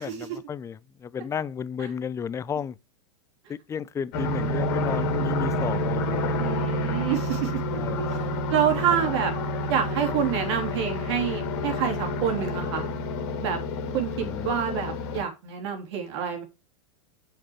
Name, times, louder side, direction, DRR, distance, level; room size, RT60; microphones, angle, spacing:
voice 1, 0.0-2.8 3.5-6.5 7.7-8.4 14.2-14.5, left 7 dB, 20° left, 0.5 m, -33 dB
sound 1, 4.1-15.2, left 1 dB, 55° left, 2.0 m, -29 dB
voice 2, 6.3-7.5 8.0-9.3 9.7-12.8 13.4-13.6 13.9-16.4, right 8 dB, 65° right, 3.1 m, -27 dB
6.7 x 6.0 x 4.7 m
hypercardioid pair, 105°, 16 cm